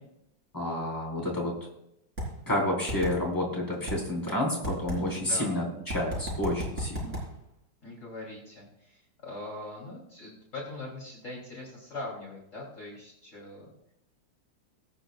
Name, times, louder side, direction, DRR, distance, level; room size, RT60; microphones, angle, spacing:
voice 1, 0.5-1.5 2.5-7.1, left 1 dB, 10° left, -3 dB, 4.0 m, -30 dB
sound 1, 2.2-2.3 2.9-3.1 3.9-4.0 4.6-5.0 5.9-7.2, right 1 dB, 40° right, 4.0 m, -32 dB
voice 2, 5.1-5.6 7.8-13.7, left 2 dB, 40° left, -4 dB, 3.4 m, -41 dB
22.0 x 8.8 x 2.4 m, 0.81 s
omnidirectional pair, 2.0 m